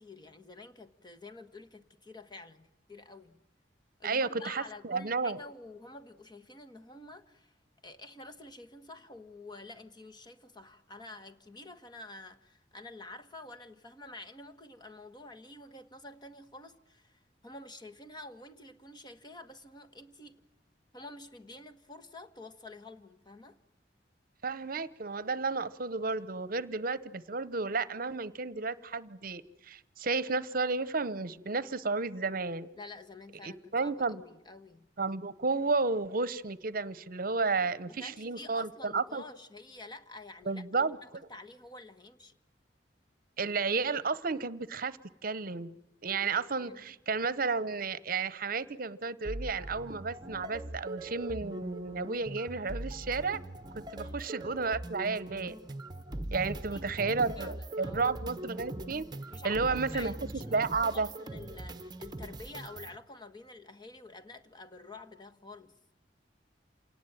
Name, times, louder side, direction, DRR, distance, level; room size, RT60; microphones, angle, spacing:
voice 1, 0.0-3.4 4.0-7.5 7.8-20.5 20.9-23.6 32.8-34.9 37.6-42.4 46.6-46.8 54.0-54.2 56.4-58.1 59.3-60.7 60.9-65.7, left 2 dB, 25° left, 1.4 m, -49 dB
voice 2, 4.0-5.4 24.4-32.7 33.4-34.2 35.0-39.2 40.4-41.0 43.4-53.4 53.7-55.6 56.3-59.1 59.4-60.1 60.5-61.1, right 4 dB, 55° right, 0.9 m, -32 dB
sound 1, 49.2-63.0, right 1 dB, 25° right, 1.0 m, -41 dB
28.0 x 18.5 x 9.0 m
head